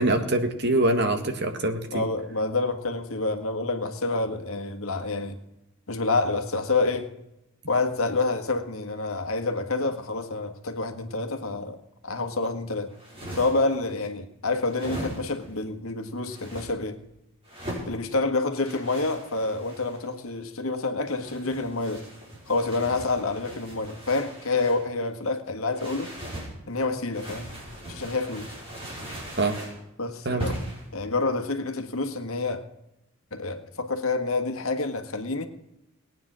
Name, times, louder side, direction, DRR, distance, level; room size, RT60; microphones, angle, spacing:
voice 1, 0.0-2.1 29.4-29.6 30.2-30.5, right 2 dB, 50° right, 7 dB, 1.7 m, -24 dB
voice 2, 1.9-5.4 5.9-7.1 7.7-12.9 13.3-17.0 17.8-22.1 22.5-26.1 26.7-27.5 27.9-28.5 30.0-30.6 30.9-32.6 33.3-35.5, left 3 dB, 75° left, 6 dB, 1.6 m, -28 dB
sound 1, 12.9-13.8 14.6-15.5 16.3-16.7 17.4-17.9 18.6-20.1 21.1-24.9 25.7-26.5 27.1-29.8 30.4-30.9, right 1 dB, 25° right, 5.4 m, -39 dB
19.5 x 9.3 x 6.2 m, 0.89 s
head